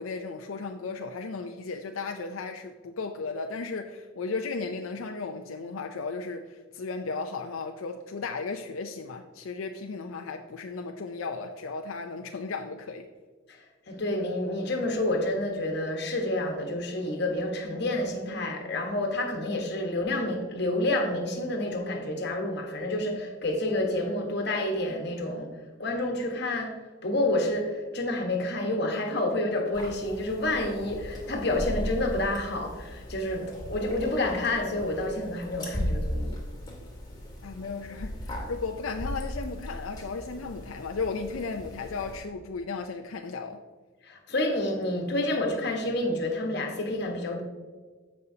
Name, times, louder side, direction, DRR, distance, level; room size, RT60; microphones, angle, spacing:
voice 1, 0.0-13.1 37.4-43.6, left 4 dB, 80° left, 0.5 m, -35 dB
voice 2, 13.9-25.5 25.8-26.7 27.0-36.3 44.0-47.4, left 1 dB, 50° left, 1.3 m, -29 dB
sound 1, 29.7-42.2, equal, 20° left, 2.0 m, -37 dB
14.5 x 5.4 x 2.8 m
head